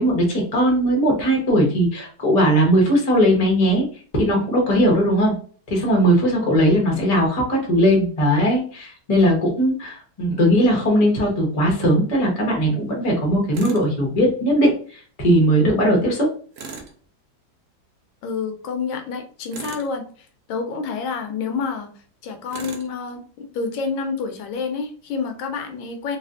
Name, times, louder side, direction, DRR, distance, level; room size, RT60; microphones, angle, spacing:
voice 1, 0.0-3.9 4.1-5.3 5.7-16.3, equal, 35° left, -1 dB, 0.6 m, -19 dB
Tools, 13.5-13.9 16.5-17.0 19.5-20.0 22.5-22.9, right 5 dB, 70° right, 1.1 m, -36 dB
voice 2, 18.2-20.0 20.5-21.9 22.2-26.2, left 5 dB, 80° left, 5 dB, 1.4 m, -28 dB
3.3 x 2.4 x 2.4 m, 0.43 s
omnidirectional pair, 2.1 m